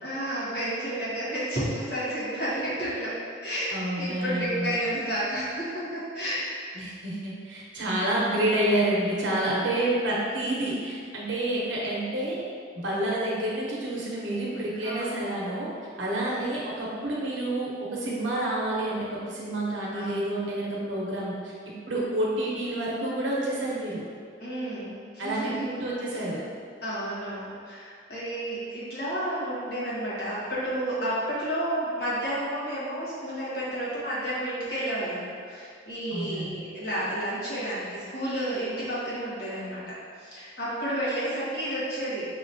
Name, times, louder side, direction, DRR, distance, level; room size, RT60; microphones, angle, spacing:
voice 1, 0.0-3.1 3.4-6.5 10.3-10.7 14.8-15.2 16.2-16.5 19.9-20.1 24.4-25.7 26.1-26.2 26.8-42.2, right 1 dB, 55° left, -9 dB, 1.3 m, -31 dB
voice 2, 3.7-4.7 6.7-12.4 12.7-15.7 16.0-24.0 25.2-26.4 36.1-36.7, right 1 dB, 90° right, -5 dB, 0.9 m, -29 dB
5.0 x 2.9 x 2.7 m, 2.1 s
head